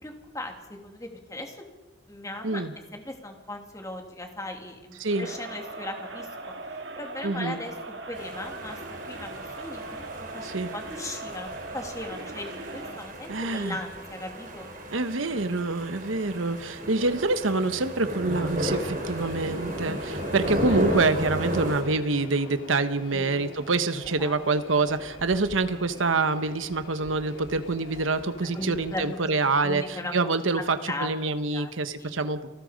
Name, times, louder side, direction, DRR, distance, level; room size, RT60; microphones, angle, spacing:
voice 1, 0.0-1.6 2.1-2.6 2.9-6.3 7.0-7.7 8.1-8.8 9.1-14.7 23.1-23.4 24.2-24.4 28.5-29.2 29.6-30.1 30.5-31.1 31.5-31.7 32.0-32.2, left 2 dB, 15° left, 3 dB, 2.8 m, -38 dB
Crowd, 5.1-13.2, right 2 dB, 60° right, 2.1 m, -40 dB
voice 2, 7.2-7.6 10.4-10.7 13.3-13.8 14.9-32.5, right 3 dB, 85° right, 10 dB, 1.1 m, -26 dB
sound 1, 8.1-21.8, equal, 45° right, 4.3 m, -34 dB
sound 2, 18.4-29.2, left 2 dB, 90° left, 3.1 m, -44 dB
30.0 x 20.0 x 5.2 m, 1.3 s
head